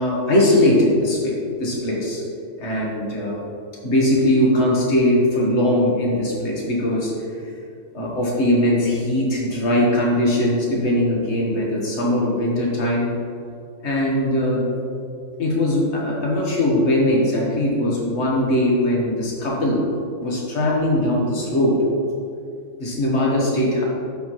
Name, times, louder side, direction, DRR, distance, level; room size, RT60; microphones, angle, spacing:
voice 1, 0.0-2.2 2.6-3.4 3.8-7.1 7.9-13.1 13.8-14.8 15.4-19.8 20.2-21.8 22.8-23.8, left 1 dB, 60° left, -3 dB, 1.7 m, -20 dB
11.5 x 4.3 x 3.1 m, 2.5 s
omnidirectional pair, 1.4 m